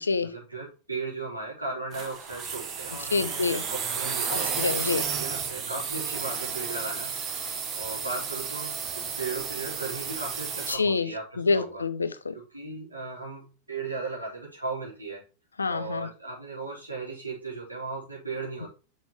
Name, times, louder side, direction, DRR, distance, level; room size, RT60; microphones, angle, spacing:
voice 1, 0.2-4.6 5.1-7.3 7.8-11.8 12.3-15.2 15.7-18.7, right 3 dB, 85° right, 4.1 m, -36 dB
sound 1, 1.9-10.8, right 6 dB, 30° right, 1.6 m, -32 dB
voice 2, 3.1-3.6 4.3-5.1 10.7-11.1 11.4-12.3 15.6-16.1, left 4 dB, 75° left, 0.6 m, -27 dB
6.4 x 6.2 x 3.2 m
figure-of-eight pair, 90°, 0 cm